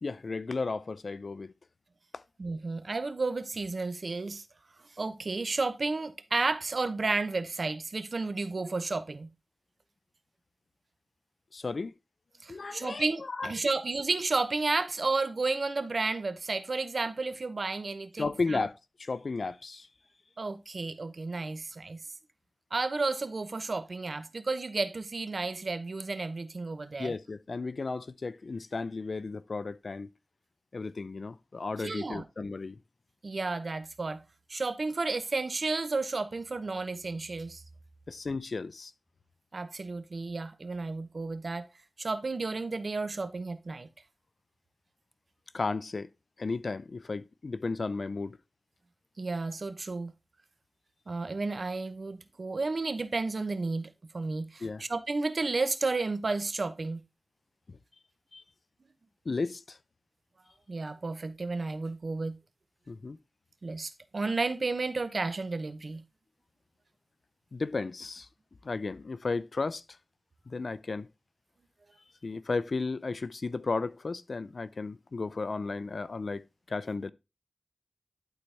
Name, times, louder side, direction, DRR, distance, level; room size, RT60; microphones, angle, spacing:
voice 1, 0.0-1.5 8.6-8.7 11.5-11.9 12.5-13.5 18.2-19.9 27.0-30.1 30.7-32.8 38.1-38.9 45.5-46.1 46.4-48.4 54.6-54.8 57.7-57.8 58.3-58.4 59.3-59.8 62.9-63.2 67.5-68.3 68.6-69.8 70.5-71.1 72.2-77.1, left 3 dB, 75° left, 0.5 m, -34 dB
voice 2, 2.4-4.4 5.0-9.3 12.4-18.6 20.4-22.0 22.7-27.1 31.8-32.2 33.2-34.2 34.5-37.6 39.5-41.7 42.0-43.9 49.2-50.1 51.1-57.0 60.7-62.4 63.6-66.0, right 3 dB, 70° right, 0.8 m, -32 dB
11.5 x 4.1 x 3.4 m
wide cardioid pair, 60°, 0 cm